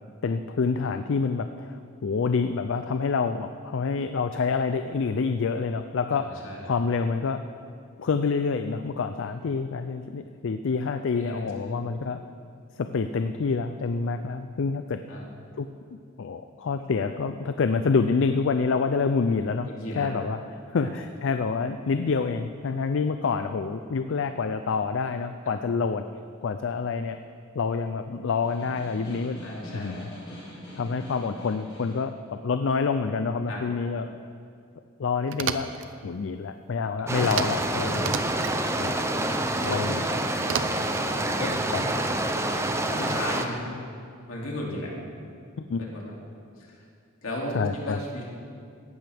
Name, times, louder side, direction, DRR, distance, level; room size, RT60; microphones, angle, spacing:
voice 1, 0.2-7.4 8.0-12.2 12.8-15.0 15.6-19.7 19.9-20.4 20.7-26.0 26.4-27.2 27.5-29.4 29.7-30.1 30.8-34.1 35.0-35.7 36.0-38.2 38.8-39.0 39.6-40.0 41.7-41.8 45.6-45.9 47.5-48.0, left 5 dB, 60° left, 9 dB, 0.4 m, -27 dB
voice 2, 6.1-6.7 11.2-11.8 15.1-15.3 19.6-20.1 20.7-20.9 25.4-25.6 29.4-30.0 33.5-33.6 39.6-39.8 40.8-41.6 42.9-43.7 44.3-44.9 45.8-46.1 46.6-46.8 47.2-48.2, left 1 dB, 75° left, -3 dB, 2.6 m, -35 dB
Snare drum, 28.3-32.1, equal, 25° left, 3.5 m, -44 dB
sound 1, 35.3-35.9 37.2-37.7 37.9-38.6 40.4-41.0, right 7 dB, 60° right, 0.5 m, -31 dB
sound 2, 37.1-43.5, right 1 dB, 15° right, 0.6 m, -27 dB
16.5 x 12.0 x 3.5 m, 2.4 s
head